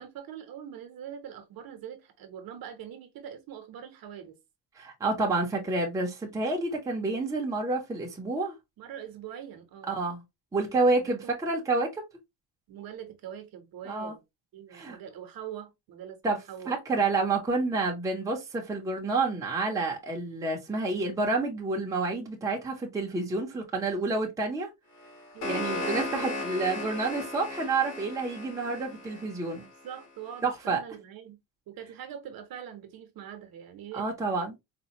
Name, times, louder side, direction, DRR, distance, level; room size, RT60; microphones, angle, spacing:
voice 1, 0.0-4.4 8.8-9.9 11.0-11.4 12.7-14.2 14.5-16.8 25.3-27.2 28.6-29.0 29.8-31.4 31.7-34.1, right 9 dB, 50° right, 0.8 m, -43 dB
voice 2, 4.8-8.5 9.9-10.2 10.5-12.0 13.9-14.1 14.7-15.0 16.2-16.4 16.7-24.7 25.4-29.7 30.4-30.8 33.9-34.6, right 3 dB, 10° right, 0.6 m, -29 dB
sound 1, 25.0-30.1, left 2 dB, 75° left, 2.4 m, -36 dB
4.2 x 2.2 x 2.7 m
cardioid pair, 170°, 44 cm